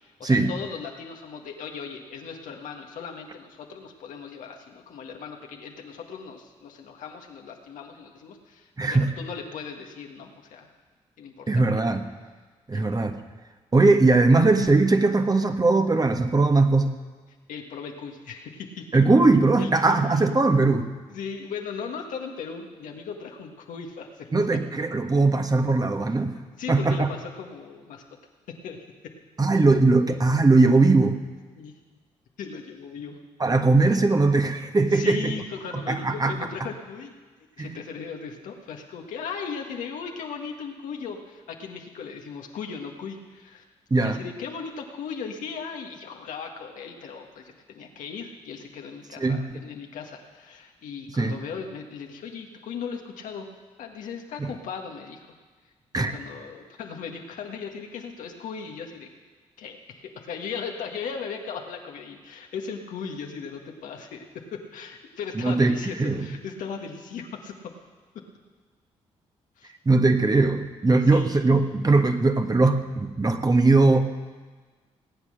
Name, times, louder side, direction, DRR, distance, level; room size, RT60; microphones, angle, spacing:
voice 1, 0.2-10.7 11.2-11.8 12.7-12.8 17.5-18.9 19.6-20.0 21.1-24.6 26.6-28.0 28.5-28.8 29.0-29.1 31.6-31.7 32.4-33.2 34.9-37.1 37.6-43.6 43.9-53.5 53.8-55.3 55.9-59.1 59.6-67.6 68.1-68.2 69.6-69.7 71.0-71.5, left 6 dB, 75° left, 2 dB, 1.7 m, -37 dB
voice 2, 8.8-9.1 11.5-12.1 12.7-13.2 13.7-16.9 18.9-20.9 24.3-26.3 26.7-27.1 29.4-31.2 33.4-35.3 35.9-36.3 37.6-37.7 43.9-44.2 49.2-49.6 51.2-51.4 54.4-54.5 55.9-56.1 65.4-66.3 69.8-74.0, right 3 dB, 30° right, 6 dB, 1.4 m, -20 dB
18.5 x 8.4 x 6.5 m, 1.4 s
supercardioid pair, 50°, 13 cm